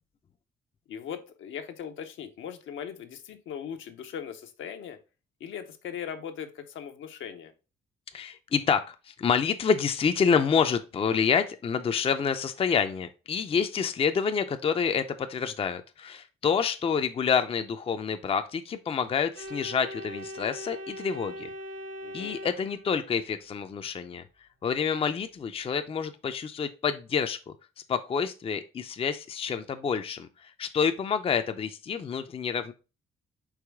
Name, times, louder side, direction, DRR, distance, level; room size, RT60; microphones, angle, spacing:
voice 1, 0.9-5.0 5.4-7.5 22.0-22.4, left 8 dB, 75° left, 6 dB, 0.7 m, -39 dB
voice 2, 8.1-21.5 22.1-24.2 24.6-27.4 27.9-32.7, left 6 dB, 30° left, 8 dB, 0.4 m, -28 dB
Organ, 19.3-23.3, equal, 75° right, 1.9 m, -40 dB
4.8 x 3.0 x 3.4 m, 0.32 s
cardioid pair, 90°, 20 cm